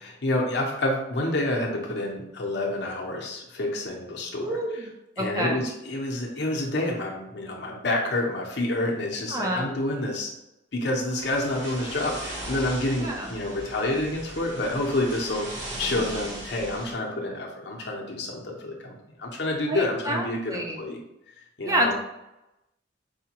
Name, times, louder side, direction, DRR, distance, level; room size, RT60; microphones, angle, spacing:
voice 1, 0.0-4.6 5.2-10.3 10.7-15.5 15.8-18.9 19.2-21.0 21.6-21.9, left 1 dB, 65° left, -1 dB, 0.8 m, -28 dB
voice 2, 4.4-4.9 5.2-5.6 9.3-9.7 13.0-13.3 19.7-20.8 21.6-21.9, right 1 dB, 20° right, 0 dB, 0.4 m, -28 dB
sound 1, 11.2-16.9, right 1 dB, 40° right, 1.1 m, -38 dB
4.8 x 2.3 x 2.9 m, 0.91 s
head